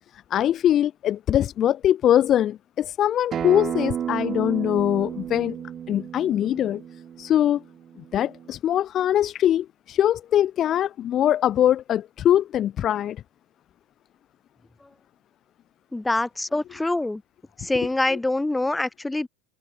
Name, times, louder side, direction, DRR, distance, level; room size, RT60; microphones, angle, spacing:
voice 1, 0.3-5.6 5.9-6.8 7.2-7.6 8.1-13.2 18.1-18.2, left 11 dB, 40° left, 1.6 m, -22 dB
Acoustic guitar, 3.3-8.5, right 9 dB, 35° right, 2.7 m, -32 dB
voice 2, 15.9-17.2 17.6-19.3, left 2 dB, 10° left, 2.2 m, -25 dB
hypercardioid pair, 85°, 0 cm